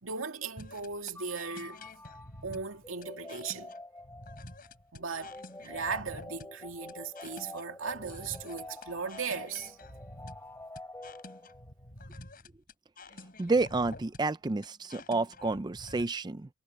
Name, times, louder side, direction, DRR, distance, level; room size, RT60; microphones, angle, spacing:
voice 1, 0.0-1.8 2.4-3.7 4.9-5.3 5.6-9.8, right 5 dB, 85° right, 2.3 m, -37 dB
sound 1, 0.6-16.0, left 2 dB, 45° left, 6.7 m, -49 dB
sound 2, 1.1-11.9, left 1 dB, 15° left, 3.1 m, -48 dB
voice 2, 13.4-16.5, right 3 dB, 20° right, 0.4 m, -30 dB
head